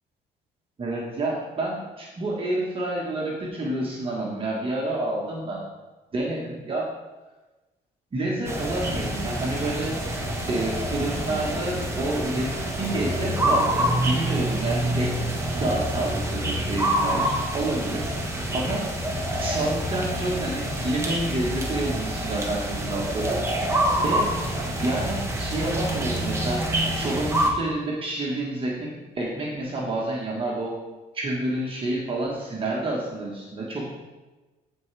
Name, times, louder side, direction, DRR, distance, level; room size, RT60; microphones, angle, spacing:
voice 1, 0.8-5.6 6.1-6.9 8.1-9.9 10.5-12.5 12.8-15.2 15.5-18.1 18.5-24.3 24.8-26.7 26.9-30.7 31.1-33.8, right 2 dB, 30° right, -3 dB, 1.5 m, -29 dB
sound 1, 8.4-27.5, right 1 dB, 15° right, 1.3 m, -27 dB
sound 2, 9.3-14.8, equal, 15° left, 2.1 m, -43 dB
13.5 x 4.6 x 3.4 m, 1.2 s
cardioid pair, 110°, 17 cm